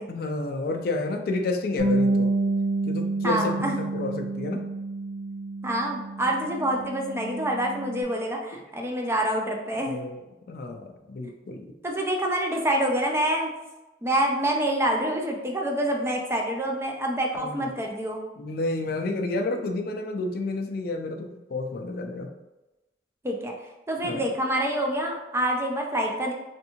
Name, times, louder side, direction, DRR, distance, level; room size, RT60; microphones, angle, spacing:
voice 1, 0.1-2.3 2.9-4.6 8.5-8.6 9.9-10.2 10.5-11.7 17.4-17.7 18.4-22.3 24.0-24.2, left 2 dB, 55° left, 4 dB, 0.3 m, -30 dB
Bass guitar, 1.8-8.0, right 2 dB, 80° right, 0.7 m, -28 dB
voice 2, 3.2-3.7 5.6-10.0 11.8-13.5 14.0-18.2 23.2-23.5 23.9-26.3, right 1 dB, 15° right, 0 dB, 0.4 m, -26 dB
3.5 x 2.6 x 2.8 m, 1.0 s
head